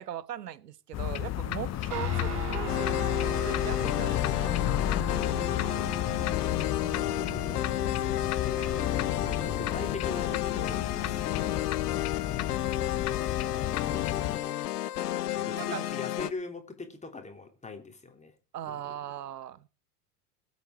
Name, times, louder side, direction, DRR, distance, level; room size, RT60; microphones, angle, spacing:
voice 1, 0.0-3.1 3.4-4.6 15.5-15.8 18.5-19.7, right 10 dB, 85° right, 0.8 m, -39 dB
sound 1, 0.9-14.4, left 13 dB, 35° left, 1.0 m, -32 dB
sound 2, 1.9-11.6, right 8 dB, 55° right, 5.1 m, -42 dB
sound 3, 2.7-16.3, left 13 dB, 75° left, 1.0 m, -32 dB
voice 2, 5.5-11.3 12.2-12.6 13.1-14.3 15.3-18.3 18.7-18.8, left 3 dB, 15° left, 3.1 m, -42 dB
21.5 x 8.4 x 4.8 m
hypercardioid pair, 85°, 47 cm